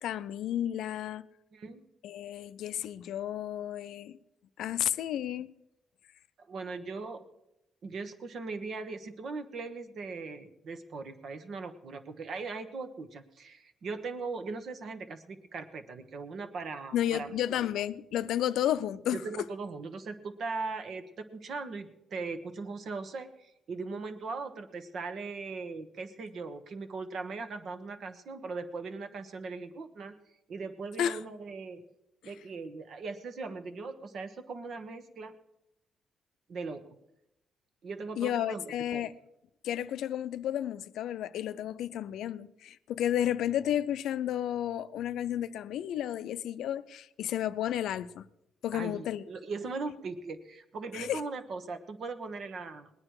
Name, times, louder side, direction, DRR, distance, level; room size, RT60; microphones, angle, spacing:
voice 1, 0.0-1.3 2.0-4.2 4.6-5.5 16.9-19.2 31.0-31.2 32.2-32.3 38.2-39.1 39.6-48.3 48.6-49.2 50.9-51.2, left 11 dB, 85° left, 0.5 m, -32 dB
voice 2, 1.5-1.9 6.5-7.2 7.8-17.3 19.1-30.2 30.5-31.8 32.2-35.3 36.5-36.9 37.8-39.1 48.7-52.9, right 4 dB, 60° right, 1.3 m, -39 dB
19.5 x 9.7 x 4.8 m
cardioid pair, 110°, 0 cm